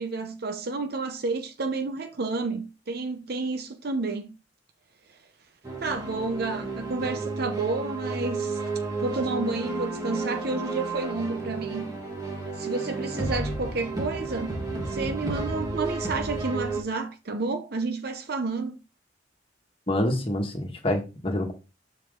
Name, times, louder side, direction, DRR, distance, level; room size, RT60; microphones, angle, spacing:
voice 1, 0.0-4.3 5.8-8.6 9.0-11.9 12.6-14.6 14.9-18.8, right 3 dB, 60° right, 0.8 m, -30 dB
sound 1, 5.6-16.8, right 3 dB, 20° right, 1.7 m, -32 dB
voice 2, 19.9-21.5, left 1 dB, 30° left, 1.6 m, -27 dB
7.1 x 4.3 x 3.7 m
head